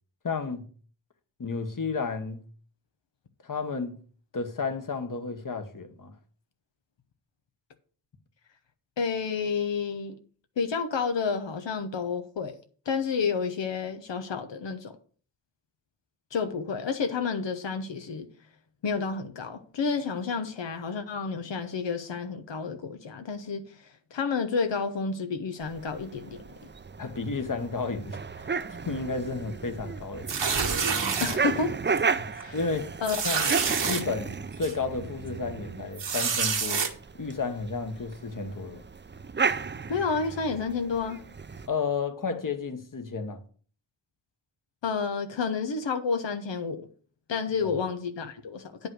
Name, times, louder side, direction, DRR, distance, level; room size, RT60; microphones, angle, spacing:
voice 1, 0.2-0.7 1.4-2.4 3.4-4.0 4.3-6.1 27.0-28.5 28.9-30.4 32.2-32.9 33.2-33.5 33.8-36.9 37.2-38.8 41.7-43.4 47.6-47.7, left 4 dB, 50° left, 1.4 m, -32 dB
voice 2, 9.0-10.2 10.6-12.6 12.9-15.0 16.3-18.3 18.8-26.4 31.2-31.9 32.3-32.6 33.0-33.2 39.9-41.2 44.8-46.9 47.3-48.9, left 5 dB, 90° left, 1.0 m, -30 dB
sound 1, 25.6-41.7, right 5 dB, 25° right, 0.5 m, -34 dB
sound 2, 30.3-31.4 32.0-32.1 32.4-32.5 33.0-34.0 34.6-34.7 36.0-36.9, right 6 dB, 85° right, 1.6 m, -27 dB
9.4 x 5.4 x 6.4 m
wide cardioid pair, 80°, 42 cm